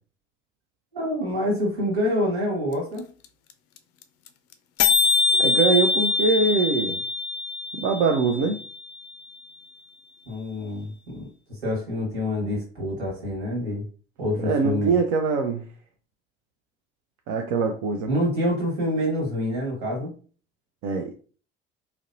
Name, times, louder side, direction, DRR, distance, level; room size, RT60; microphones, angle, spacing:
voice 1, 0.9-3.1 10.2-13.8 14.2-15.0 18.1-20.1, left 1 dB, 75° right, 1.5 m, -27 dB
sound 1, 2.7-2.8 3.0-3.1 3.2-3.5 3.8-3.9 4.0-4.3 4.5-4.6 4.8-8.8, left 4 dB, 50° left, 0.4 m, -23 dB
voice 2, 5.3-7.0 7.7-8.6 14.4-15.6 17.3-18.1 20.8-21.2, right 4 dB, 60° right, 0.4 m, -23 dB
2.5 x 2.0 x 2.6 m
figure-of-eight pair, 55°, 31 cm